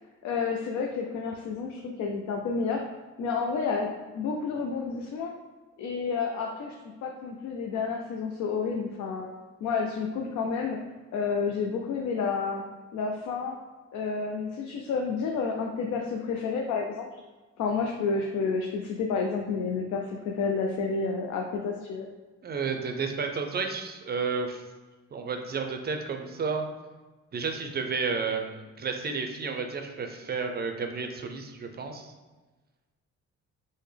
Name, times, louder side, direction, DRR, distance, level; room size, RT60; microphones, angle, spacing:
voice 1, 0.2-2.8 3.2-3.9 4.1-5.3 5.8-6.8 7.0-9.3 9.6-10.8 11.1-12.6 12.9-13.5 13.9-17.1 17.6-22.1, left 5 dB, 70° left, 1 dB, 0.4 m, -30 dB
voice 2, 22.4-24.6 25.1-26.6 27.3-32.1, right 5 dB, 35° right, 5 dB, 0.4 m, -32 dB
3.6 x 2.1 x 3.2 m, 1.3 s
cardioid pair, 90°, 30 cm